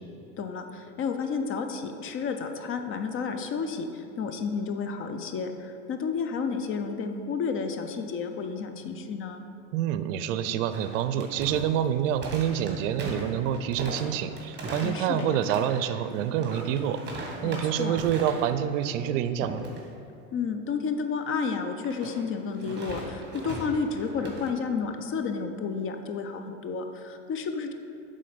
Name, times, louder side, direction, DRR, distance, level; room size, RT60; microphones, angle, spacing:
voice 1, 0.4-9.4 14.8-15.4 17.4-18.0 20.3-27.7, left 5 dB, 35° left, 6 dB, 0.5 m, -31 dB
voice 2, 9.7-19.6, right 9 dB, 70° right, 11 dB, 0.5 m, -27 dB
sound 1, 10.7-18.5 18.8-19.1 19.4-19.8 21.8-24.5, right 2 dB, 25° right, 1.5 m, -39 dB
7.5 x 3.8 x 5.1 m, 2.5 s
supercardioid pair, 105°, 39 cm